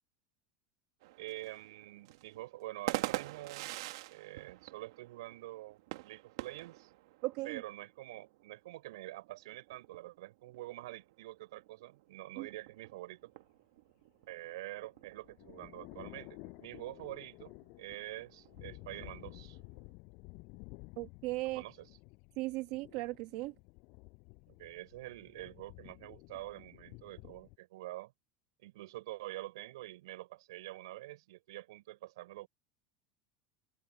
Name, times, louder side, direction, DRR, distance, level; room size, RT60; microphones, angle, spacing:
sound 1, 1.0-19.9, right 18 dB, 65° right, 1.4 m, -46 dB
voice 1, 1.2-3.7 4.1-6.9 7.4-13.3 14.3-19.6 21.5-21.9 24.5-28.1 28.6-32.5, right 17 dB, 90° right, 5.6 m, -46 dB
voice 2, 7.2-7.6 12.4-12.5 21.0-21.6 22.4-23.5, right 20 dB, 45° right, 1.4 m, -37 dB
sound 2, 14.5-27.6, left 29 dB, 45° left, 6.0 m, -53 dB
supercardioid pair, 180°, 2 cm